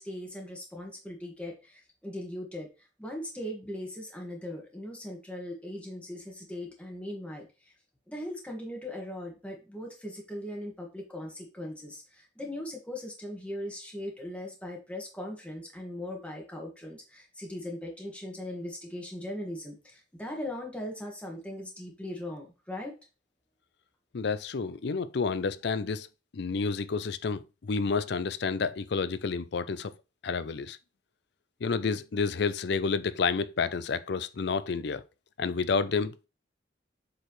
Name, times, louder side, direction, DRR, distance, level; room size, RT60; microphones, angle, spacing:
voice 1, 0.0-2.7 3.0-7.5 8.1-22.9, left 1 dB, 5° left, 1.8 m, -39 dB
voice 2, 24.1-26.1 26.3-29.9 30.2-30.8 31.6-35.0 35.4-36.3, left 4 dB, 65° left, 0.5 m, -30 dB
7.9 x 4.7 x 3.2 m
head